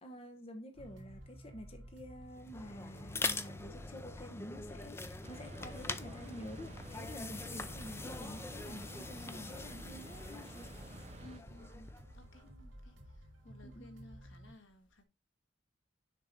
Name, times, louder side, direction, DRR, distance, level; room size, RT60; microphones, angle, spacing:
voice 1, 0.0-10.7 12.4-12.7 13.6-13.9, equal, 30° left, 0.9 m, -49 dB
sound 1, 0.7-14.5, equal, 90° right, 2.6 m, -54 dB
sound 2, 2.3-12.2, left 3 dB, 15° left, 0.5 m, -44 dB
sound 3, 5.2-11.4, right 2 dB, 35° right, 0.8 m, -51 dB
voice 2, 11.2-12.4 12.8-15.0, left 2 dB, 80° left, 1.6 m, -57 dB
6.7 x 4.8 x 3.9 m
head